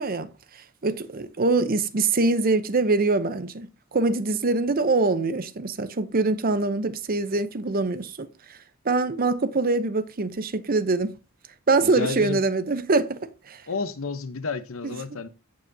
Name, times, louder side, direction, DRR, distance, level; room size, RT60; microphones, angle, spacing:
voice 1, 0.0-8.6 8.8-11.2 11.7-13.6 14.8-15.0, right 3 dB, 40° right, 0.7 m, -24 dB
voice 2, 11.8-12.4 13.7-15.3, left 4 dB, 70° left, 0.9 m, -31 dB
16.0 x 5.9 x 2.7 m
head